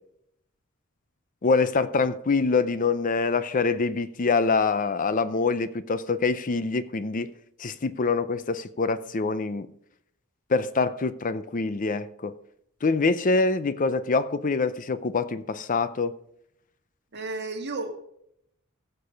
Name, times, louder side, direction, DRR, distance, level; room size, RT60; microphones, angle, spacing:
voice 1, 1.4-7.3 7.6-9.7 10.5-12.3 12.8-16.1, left 4 dB, 40° left, 0.5 m, -25 dB
voice 2, 17.1-18.0, right 3 dB, 50° right, 1.9 m, -32 dB
16.5 x 6.8 x 5.2 m
head